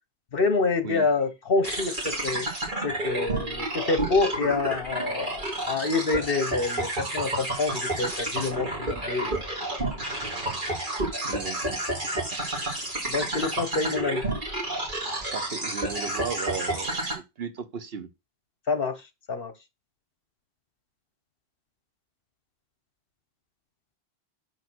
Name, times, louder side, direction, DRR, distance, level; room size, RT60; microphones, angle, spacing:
voice 1, 0.3-2.5 2.8-9.4 13.1-14.2 18.7-19.0 19.3-19.5, left 4 dB, 65° left, 1.3 m, -27 dB
sound 1, 1.6-17.1, right 1 dB, 50° right, 3.6 m, -30 dB
voice 2, 11.2-12.4 15.3-18.1, right 6 dB, 70° right, 1.2 m, -36 dB
6.6 x 5.5 x 6.1 m
omnidirectional pair, 1.1 m